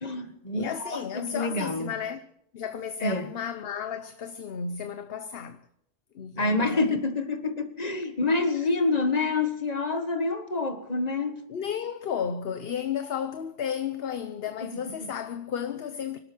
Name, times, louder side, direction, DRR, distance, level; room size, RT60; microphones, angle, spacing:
voice 1, 0.0-1.9 3.0-3.3 6.4-11.4 14.6-15.1, left 3 dB, 40° left, 1.6 m, -27 dB
voice 2, 0.5-2.3 2.5-5.6 6.1-6.9 11.5-16.2, left 8 dB, 65° left, 1.0 m, -33 dB
24.5 x 12.5 x 4.4 m
omnidirectional pair, 1.1 m